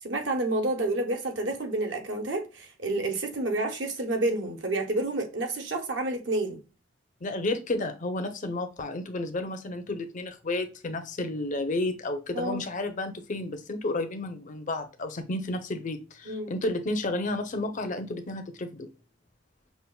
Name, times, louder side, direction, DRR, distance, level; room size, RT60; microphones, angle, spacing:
voice 1, 0.0-6.6 12.3-12.6 16.3-16.5, right 2 dB, 65° right, 1.0 m, -29 dB
voice 2, 7.2-18.9, left 2 dB, 40° left, 0.6 m, -32 dB
5.6 x 2.5 x 2.2 m
head